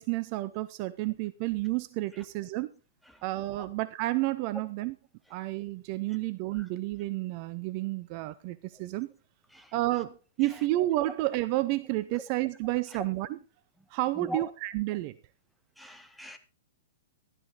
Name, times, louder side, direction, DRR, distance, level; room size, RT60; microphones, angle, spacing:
voice 1, 0.0-2.7 3.2-5.0 5.3-9.1 9.7-13.4 13.9-15.2, right 17 dB, 40° right, 0.7 m, -30 dB
voice 2, 14.2-14.5 15.8-16.4, equal, ahead, 1.5 m, -40 dB
13.0 x 12.5 x 4.0 m
figure-of-eight pair, 110°, 0 cm